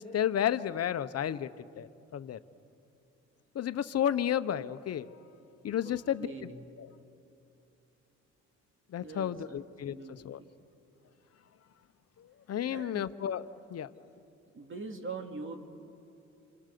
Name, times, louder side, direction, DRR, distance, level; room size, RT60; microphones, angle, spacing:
voice 1, 0.0-1.5 1.8-2.4 3.5-5.1 5.6-6.3 8.9-10.0 10.2-10.4 12.5-13.4 13.7-13.9, left 10 dB, 55° left, 12 dB, 1.0 m, -31 dB
voice 2, 5.8-6.7 9.0-10.5 12.7-13.1 14.5-15.6, right 3 dB, 40° right, 4 dB, 2.9 m, -43 dB
28.0 x 26.5 x 6.9 m, 2.7 s
cardioid pair, 90°, 30 cm